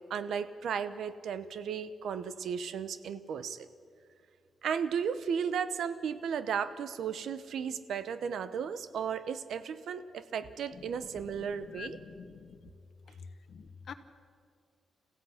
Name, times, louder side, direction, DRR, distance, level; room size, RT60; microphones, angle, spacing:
voice 1, 0.0-3.7 4.6-12.0, right 7 dB, 70° right, 13 dB, 0.8 m, -35 dB
voice 2, 11.7-12.5 13.5-13.9, left 7 dB, 55° left, 10 dB, 1.1 m, -46 dB
30.0 x 15.5 x 5.7 m, 2.3 s
wide cardioid pair, 175°, 0 cm